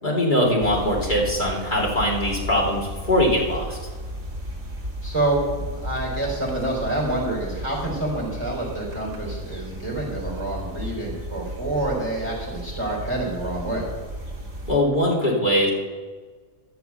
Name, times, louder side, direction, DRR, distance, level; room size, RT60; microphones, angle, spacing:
voice 1, 0.0-3.8 14.7-15.7, left 1 dB, 35° left, -4 dB, 2.9 m, -21 dB
sound 1, 0.6-14.8, equal, 50° right, 2.4 m, -34 dB
voice 2, 5.0-13.9, right 2 dB, 20° right, -4 dB, 4.1 m, -27 dB
12.0 x 6.9 x 7.0 m, 1.5 s
omnidirectional pair, 1.5 m